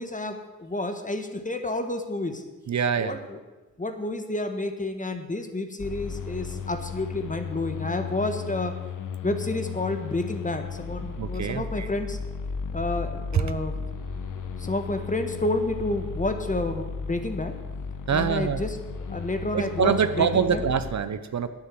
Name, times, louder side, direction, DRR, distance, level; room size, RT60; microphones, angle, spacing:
voice 1, 0.0-2.4 3.0-3.4 3.8-8.8 9.2-12.2 12.7-13.8 14.6-17.5 18.1-18.8 19.1-20.6, left 2 dB, 25° left, 7 dB, 1.5 m, -30 dB
voice 2, 2.7-3.2 11.2-11.9 13.3-13.4 18.1-18.6 19.5-21.5, right 7 dB, 55° right, 11 dB, 0.8 m, -25 dB
sound 1, 5.8-20.9, left 5 dB, 70° left, 1.1 m, -35 dB
9.4 x 9.2 x 7.6 m, 1.2 s
cardioid pair, 70°, 33 cm